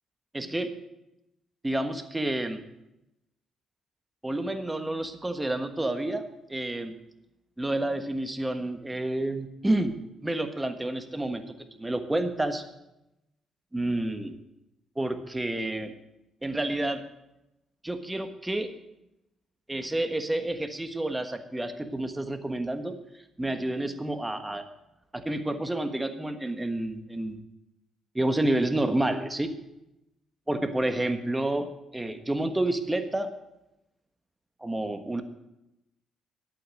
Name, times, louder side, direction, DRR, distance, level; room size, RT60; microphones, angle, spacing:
voice 1, 0.3-0.7 1.6-2.6 4.2-6.9 7.6-9.9 10.2-12.6 13.7-14.3 15.0-15.9 16.4-17.1 17.8-18.7 19.7-23.0 23.4-24.6 25.1-27.4 28.1-29.6 30.5-33.3 34.6-35.2, right 1 dB, 10° right, 8 dB, 1.4 m, -29 dB
11.5 x 8.6 x 7.7 m, 0.90 s
cardioid pair, 90°, 0 cm